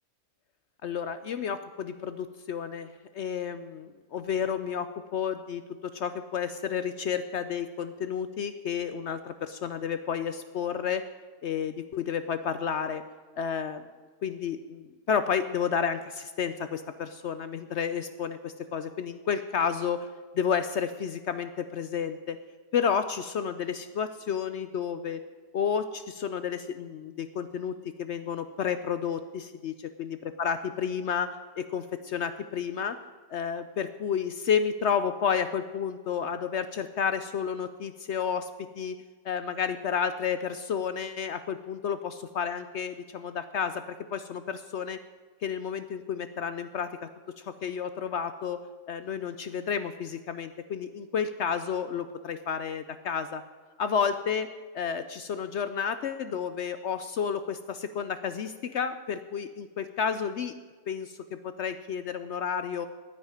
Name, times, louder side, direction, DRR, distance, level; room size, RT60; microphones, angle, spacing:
voice 1, 0.8-11.1 11.4-13.0 13.4-13.8 14.2-20.1 20.3-22.4 22.7-25.2 25.5-33.0 33.3-39.0 39.2-45.0 45.4-47.1 47.4-48.6 48.9-53.4 53.8-60.5 60.9-62.9, left 7 dB, 65° left, 11 dB, 0.7 m, -31 dB
9.8 x 9.5 x 9.8 m, 1.4 s
omnidirectional pair, 1.5 m